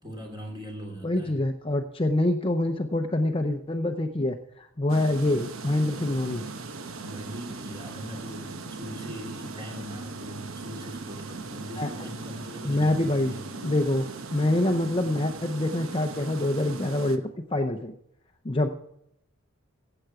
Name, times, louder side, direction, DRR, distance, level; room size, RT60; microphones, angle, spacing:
voice 1, 0.0-1.3 6.9-13.7, equal, 20° right, 3.1 m, -40 dB
voice 2, 1.0-6.4 11.8-12.1 12.6-13.3 13.6-14.1 14.3-17.2 17.5-17.9 18.4-18.7, left 1 dB, 25° left, 0.6 m, -25 dB
sound 1, 4.9-17.2, right 3 dB, 80° right, 1.0 m, -39 dB
15.5 x 7.9 x 4.7 m
head